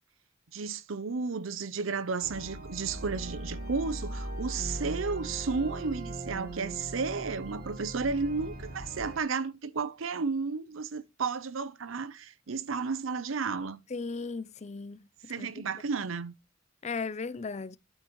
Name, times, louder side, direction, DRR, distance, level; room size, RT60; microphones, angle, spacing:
voice 1, 0.5-13.8 15.3-16.3, right 4 dB, 85° right, 0.7 m, -33 dB
sound 1, 2.2-9.2, right 1 dB, 50° right, 2.8 m, -39 dB
voice 2, 13.9-15.0 15.4-15.5 16.8-17.8, left 4 dB, 35° left, 0.5 m, -36 dB
11.0 x 8.9 x 3.1 m
head